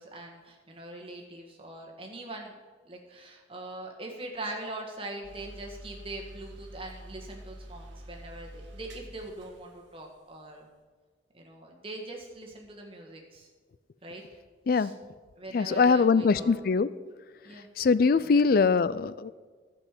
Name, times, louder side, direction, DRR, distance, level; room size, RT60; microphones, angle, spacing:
voice 1, 0.0-2.6 2.8-10.7 11.3-13.5 14.0-14.2 14.7-14.9 15.4-16.5 17.4-17.7 18.2-18.4, right 2 dB, 30° right, 1 dB, 1.5 m, -42 dB
sound 1, 5.2-10.1, right 1 dB, 85° right, 1.5 m, -47 dB
voice 2, 15.5-16.9 17.8-19.3, left 5 dB, 50° left, 16 dB, 0.3 m, -22 dB
12.0 x 5.5 x 7.5 m, 1.4 s
head